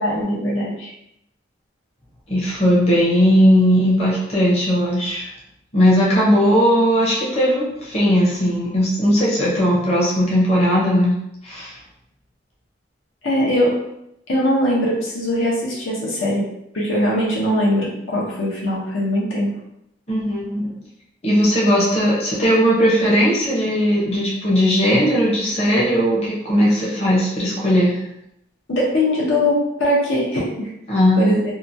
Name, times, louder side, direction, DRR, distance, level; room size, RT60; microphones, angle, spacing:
voice 1, 0.0-0.9 13.2-13.8 14.3-16.4 16.7-19.5 28.7-30.7 31.2-31.5, left 1 dB, 90° left, -4 dB, 0.8 m, -21 dB
voice 2, 2.3-5.3 5.7-11.2 11.4-11.8 20.1-20.7 21.2-28.0 30.9-31.4, equal, 30° left, -6 dB, 0.6 m, -17 dB
2.8 x 2.2 x 2.6 m, 0.79 s
head